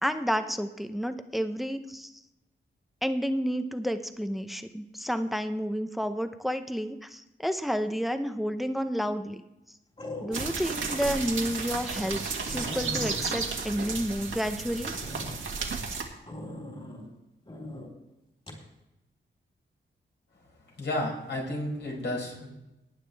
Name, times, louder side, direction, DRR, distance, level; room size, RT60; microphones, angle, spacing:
voice 1, 0.0-2.1 3.0-9.4 10.2-12.2 12.5-14.9, equal, ahead, 9 dB, 0.8 m, -30 dB
sound 1, 8.4-8.8 10.0-10.7 11.2-11.3 11.8-11.9 12.1-12.2 12.5-14.5 14.9-15.3 16.3-17.1 17.5-17.9 18.5-18.6, left 1 dB, 30° left, 3.9 m, -40 dB
sound 2, 10.3-16.0, right 4 dB, 75° right, 1.9 m, -33 dB
voice 2, 20.8-22.5, left 1 dB, 60° left, -1 dB, 4.8 m, -32 dB
19.0 x 9.2 x 3.4 m, 0.94 s
wide cardioid pair, 90°, 20 cm